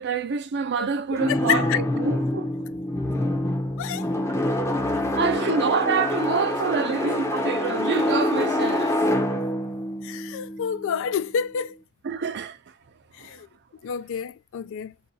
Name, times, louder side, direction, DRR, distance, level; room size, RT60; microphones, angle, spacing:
voice 1, 0.0-2.5 5.2-9.0 9.3-9.4 12.0-12.6 13.2-13.3, right 5 dB, 50° right, 0.5 m, -26 dB
voice 2, 0.8-1.8 3.8-4.1 10.0-11.8 13.1-13.5 13.8-14.9, left 8 dB, 60° left, 0.3 m, -29 dB
sound 1, 1.2-11.1, left 1 dB, 15° left, 0.7 m, -26 dB
2.7 x 2.3 x 4.0 m
head